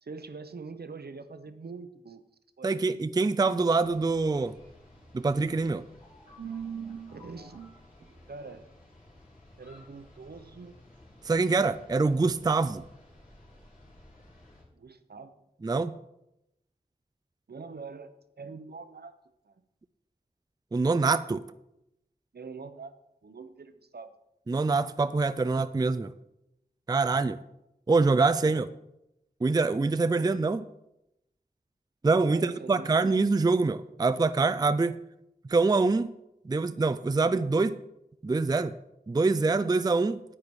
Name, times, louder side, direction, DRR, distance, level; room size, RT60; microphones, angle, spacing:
voice 1, 0.0-2.2 2.6-2.7 6.4-8.6 9.6-10.8 14.7-15.3 17.5-19.1 19.5-19.6 22.3-24.1 28.4-28.6 32.3-32.9, right 5 dB, 75° right, 10 dB, 0.8 m, -43 dB
voice 2, 2.6-4.6 5.1-5.8 11.2-12.8 15.6-16.0 20.7-21.4 24.5-26.1 26.9-27.4 27.9-28.7 29.4-30.7 32.0-35.0 35.5-36.1 36.5-37.8 38.2-38.7 39.1-40.2, right 3 dB, 25° right, 12 dB, 0.4 m, -25 dB
sound 1, 3.8-14.6, left 1 dB, 55° left, 4.2 m, -55 dB
9.6 x 9.0 x 4.7 m, 0.86 s
wide cardioid pair, 70°, 17 cm